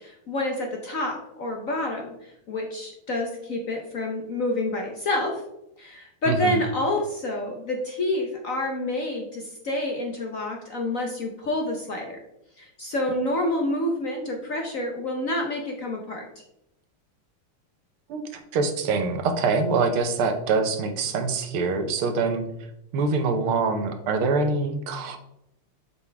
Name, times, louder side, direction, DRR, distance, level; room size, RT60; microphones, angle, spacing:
voice 1, 0.0-5.4 5.8-12.2 12.6-16.4, left 1 dB, 55° left, 2 dB, 0.9 m, -28 dB
voice 2, 6.3-6.6 18.1-22.5 22.9-25.2, right 4 dB, 75° right, 7 dB, 1.8 m, -24 dB
7.1 x 6.9 x 3.3 m, 0.83 s
omnidirectional pair, 2.4 m